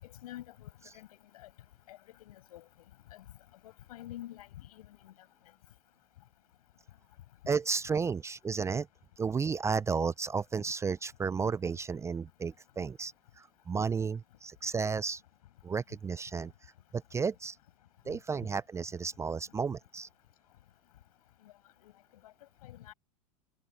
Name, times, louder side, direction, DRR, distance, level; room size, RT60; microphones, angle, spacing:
voice 1, 0.2-0.7 0.9-1.1 1.4-1.5 1.9-2.6 3.1-3.2 3.6-4.5 5.0-5.1 21.8-21.9 22.6-22.9, left 14 dB, 75° left, 6.1 m, -47 dB
voice 2, 7.5-8.9 9.2-15.2 15.6-16.5 16.9-17.6 18.1-20.1, right 5 dB, 15° right, 0.4 m, -33 dB
hypercardioid pair, 110°, 19 cm